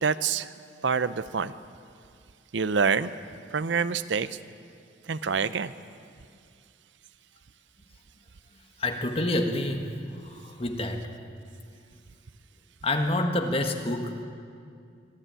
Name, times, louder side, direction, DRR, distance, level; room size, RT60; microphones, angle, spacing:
voice 1, 0.0-0.5 0.8-1.5 2.5-3.1 3.5-4.3 5.1-5.7, right 5 dB, 75° right, 14 dB, 0.6 m, -26 dB
voice 2, 8.8-9.8 10.2-11.1 12.8-14.2, left 1 dB, 30° left, 4 dB, 1.6 m, -28 dB
24.5 x 12.5 x 9.0 m, 2.3 s
head